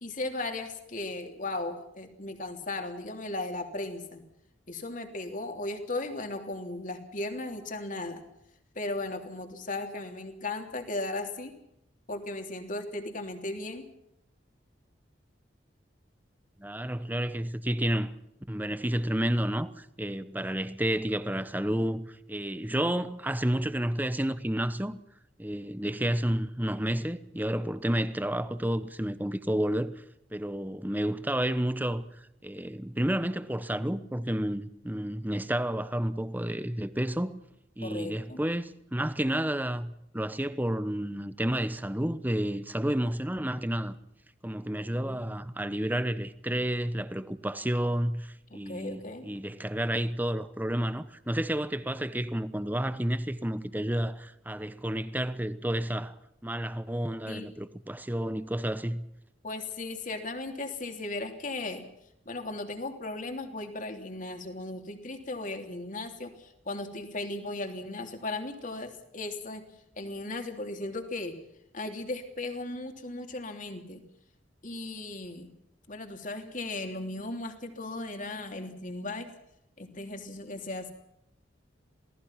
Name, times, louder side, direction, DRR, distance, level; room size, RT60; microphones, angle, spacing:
voice 1, 0.0-4.2 4.7-8.2 8.7-11.5 12.1-13.9 37.8-38.4 45.0-45.3 48.5-49.3 57.3-57.5 59.4-61.9 62.2-69.6 70.0-71.3 71.7-74.0 74.6-75.5 75.9-79.3 79.8-80.9, left 2 dB, 45° left, 3.3 m, -36 dB
voice 2, 16.6-18.1 18.5-25.0 25.4-30.0 30.3-37.4 37.8-43.9 44.4-56.1 56.4-59.1, right 1 dB, 10° right, 1.0 m, -30 dB
28.0 x 18.5 x 5.9 m
head